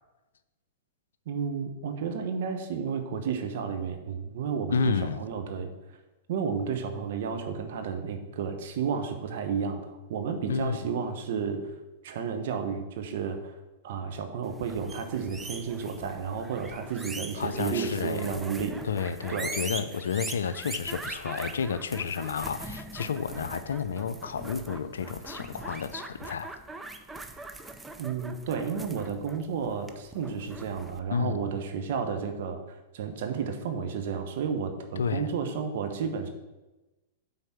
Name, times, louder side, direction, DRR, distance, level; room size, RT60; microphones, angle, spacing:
voice 1, 1.3-5.7 6.3-11.6 12.0-13.5 13.8-18.8 19.3-19.5 28.0-32.6 32.9-36.3, right 6 dB, 60° right, 1.2 m, -32 dB
voice 2, 4.7-5.2 10.5-10.9 17.4-18.3 18.8-26.5 31.1-31.5 35.0-35.3, left 6 dB, 75° left, 0.5 m, -31 dB
sound 1, 14.5-31.0, right 3 dB, 10° right, 0.6 m, -42 dB
8.8 x 4.0 x 5.8 m
hypercardioid pair, 105°, 0 cm